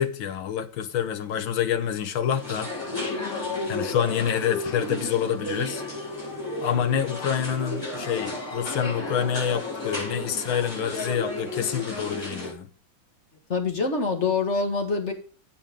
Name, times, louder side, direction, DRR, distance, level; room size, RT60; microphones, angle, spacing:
voice 1, 0.0-2.7 3.7-5.8 6.6-12.7, left 9 dB, 85° left, 1.9 m, -27 dB
sound 1, 2.3-12.5, left 2 dB, 10° left, 4.4 m, -32 dB
voice 2, 13.5-15.1, left 4 dB, 35° left, 1.9 m, -25 dB
9.8 x 8.8 x 3.7 m
omnidirectional pair, 2.1 m